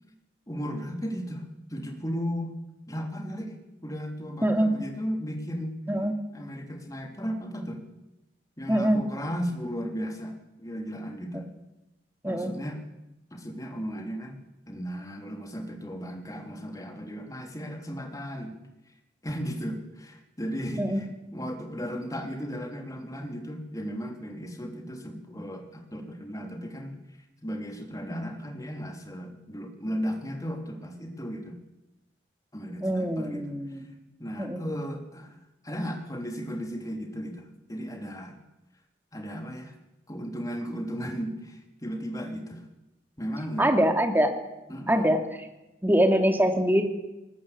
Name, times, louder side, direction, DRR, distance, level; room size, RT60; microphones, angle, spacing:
voice 1, 0.5-2.5 2.9-3.6 3.8-5.8 6.3-7.8 8.6-11.5 12.2-12.8 13.3-14.4 14.7-18.6 19.2-27.0 27.4-31.6 32.5-33.8 34.2-38.4 39.1-39.7 40.1-42.6 43.2-43.8 44.7-45.1, equal, 20° left, 3 dB, 3.4 m, -35 dB
voice 2, 4.4-4.7 5.9-6.1 8.7-9.0 12.2-12.5 20.8-21.0 32.8-33.9 34.4-34.6 43.6-44.3 44.9-45.2 45.8-46.8, equal, 10° right, 5 dB, 2.5 m, -23 dB
19.5 x 19.5 x 8.6 m, 0.97 s
head